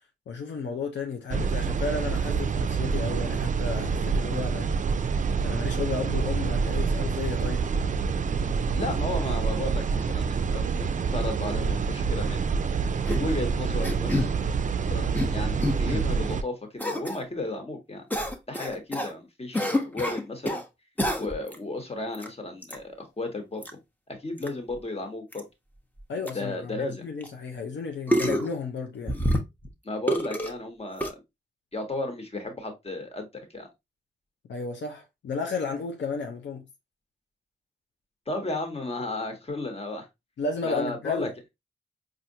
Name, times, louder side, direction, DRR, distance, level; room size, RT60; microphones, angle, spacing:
voice 1, 0.3-4.7 5.4-7.6 26.1-29.2 34.5-36.6 40.4-41.3, left 4 dB, 80° left, 0.6 m, -33 dB
sound 1, 1.3-16.4, right 5 dB, 45° right, 0.4 m, -27 dB
voice 2, 8.7-12.5 13.1-14.3 14.9-18.1 18.5-20.6 21.2-23.7 24.1-25.5 26.3-27.0 29.8-31.1 31.7-33.3 33.5-33.7 38.3-40.1 40.6-41.3, left 2 dB, 35° left, 1.3 m, -34 dB
sound 2, 13.1-13.3 13.8-14.3 14.9-15.3 15.6-16.0 16.8-17.2 18.1-19.1 19.5-20.6 21.0-21.6 22.1-22.3 22.6-22.8 23.6-23.7 24.4-24.5 24.7-24.8 25.3-25.4 26.0-26.1 26.3-26.4 27.2-27.3 28.1-28.5 29.1-29.7 30.1-30.5 31.0-31.1, equal, 10° left, 0.8 m, -27 dB
4.3 x 2.5 x 2.7 m
cardioid pair, 50°, 19 cm